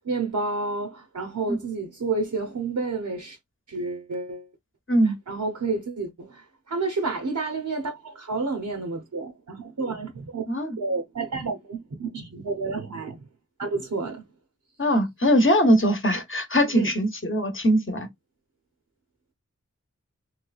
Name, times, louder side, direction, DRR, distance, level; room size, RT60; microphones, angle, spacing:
voice 1, 0.1-3.4 3.7-4.5 5.3-6.4 6.7-10.4 10.8-13.2 13.6-14.2 16.7-16.9, right 3 dB, 75° right, 0.7 m, -30 dB
voice 2, 14.8-18.1, equal, 40° left, 0.9 m, -21 dB
3.2 x 3.1 x 2.3 m
wide cardioid pair, 50°, 30 cm